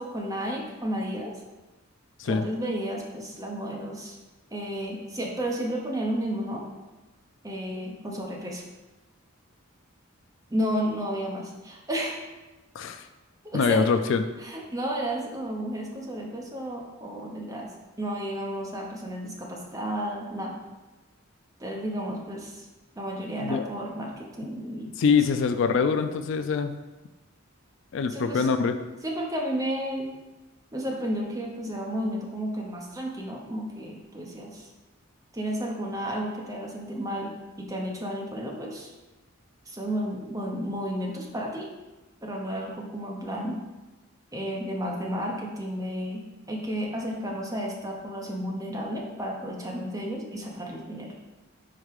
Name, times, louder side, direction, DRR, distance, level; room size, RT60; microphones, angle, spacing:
voice 1, 0.0-1.3 2.3-4.2 4.5-6.7 7.4-8.6 10.5-12.2 13.4-13.8 14.4-17.7 18.0-20.5 21.6-22.7 23.0-25.2 28.1-28.5 29.0-30.1 30.7-34.7 35.3-38.9 39.7-41.7 42.2-43.6 44.3-46.2 46.5-51.1, equal, 15° right, -1 dB, 0.9 m, -32 dB
voice 2, 12.7-13.1 13.5-14.2 23.4-23.7 25.0-26.7 27.9-28.8, left 5 dB, 65° left, 9 dB, 0.4 m, -24 dB
5.0 x 4.4 x 4.8 m, 1.1 s
head